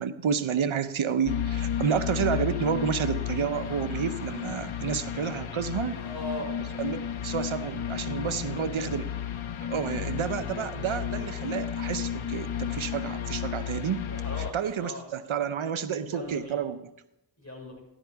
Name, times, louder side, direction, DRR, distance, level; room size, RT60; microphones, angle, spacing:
voice 1, 0.0-6.0 6.8-9.1 9.7-14.1 14.5-16.9, right 7 dB, 80° right, 11 dB, 0.8 m, -30 dB
sound 1, 1.3-14.5, left 9 dB, 80° left, 0.8 m, -33 dB
voice 2, 6.0-6.5 14.1-15.0 16.1-16.6 17.4-17.8, equal, 35° left, -2 dB, 5.2 m, -38 dB
13.5 x 11.0 x 3.4 m, 0.89 s
wide cardioid pair, 50°, 47 cm